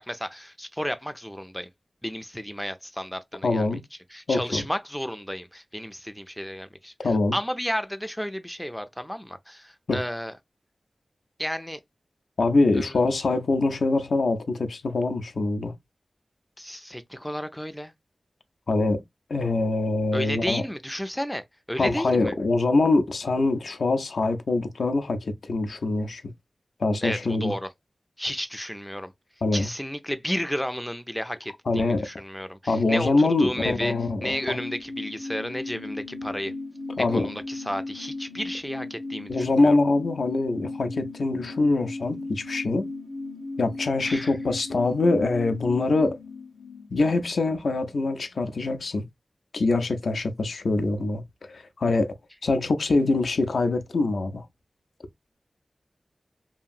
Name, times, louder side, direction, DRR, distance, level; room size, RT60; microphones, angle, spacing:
voice 1, 0.0-1.7 2.0-3.8 4.1-10.3 11.4-11.8 12.7-13.0 16.6-17.9 20.1-22.3 27.0-27.7 28.2-29.1 29.5-33.9 34.2-36.5 37.1-39.8 44.0-44.3, equal, 5° left, 0.3 m, -32 dB
voice 2, 3.4-3.8 4.3-4.6 7.0-7.4 9.9-10.0 12.4-15.7 18.7-19.0 19.3-20.6 21.8-26.2 26.8-27.5 29.4-29.7 31.7-32.1 32.7-34.6 37.0-37.3 39.3-42.9 43.6-46.2 46.9-49.0 49.5-51.2 51.5-52.1 52.4-54.5, left 3 dB, 85° left, 0.4 m, -24 dB
sound 1, 33.2-48.2 48.5-48.6, left 2 dB, 80° right, 0.9 m, -37 dB
2.8 x 2.5 x 2.3 m
wide cardioid pair, 85°, 0 cm